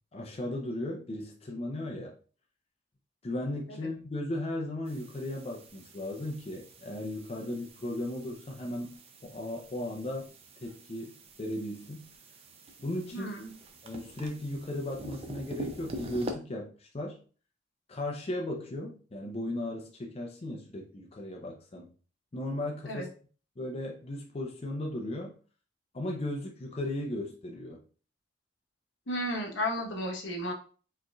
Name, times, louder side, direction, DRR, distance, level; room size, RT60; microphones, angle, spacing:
voice 1, 0.1-2.1 3.2-10.3 10.6-12.1 12.8-13.3 13.8-17.2 17.9-21.9 22.3-23.1 23.6-25.3 25.9-27.8, left 1 dB, 30° left, 0 dB, 0.5 m, -36 dB
sound 1, 4.9-16.3, right 1 dB, 30° right, 0.5 m, -46 dB
voice 2, 13.1-13.5 22.9-23.1 29.1-30.5, equal, 75° left, 1 dB, 1.0 m, -33 dB
4.7 x 3.0 x 2.3 m, 0.38 s
head